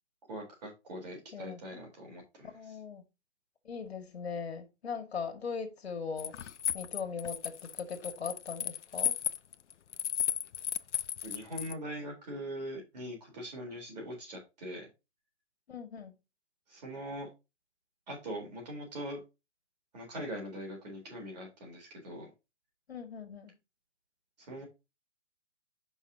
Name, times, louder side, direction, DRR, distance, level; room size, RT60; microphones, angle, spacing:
voice 1, 0.3-2.5 11.2-14.9 16.7-17.3 18.1-19.2 19.9-22.3 24.4-24.6, equal, 35° right, 3.9 m, -42 dB
voice 2, 1.3-1.8 2.5-3.0 3.6-6.3 6.7-9.2 15.7-16.1 22.9-23.6, left 5 dB, 60° left, 2.0 m, -40 dB
sound 1, 6.2-11.7, left 9 dB, 75° left, 0.7 m, -34 dB
9.8 x 5.6 x 2.8 m
hypercardioid pair, 175°, 35 cm